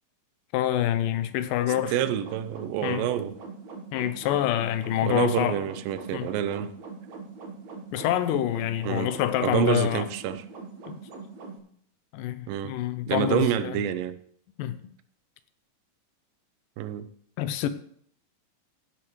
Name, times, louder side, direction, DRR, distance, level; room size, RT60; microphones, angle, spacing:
voice 1, 0.5-1.9 2.8-3.1 3.9-5.6 6.1-6.3 7.9-10.1 10.9-11.0 12.1-13.8 14.6-14.9 17.4-17.7, left 12 dB, 85° left, 2.2 m, -26 dB
sound 1, 1.6-11.6, right 4 dB, 60° right, 2.4 m, -42 dB
voice 2, 1.9-3.3 5.0-6.7 8.9-9.1 9.4-10.4 12.5-12.7 13.1-14.2 16.8-17.1, right 10 dB, 90° right, 2.4 m, -27 dB
15.5 x 7.8 x 3.1 m
omnidirectional pair, 3.9 m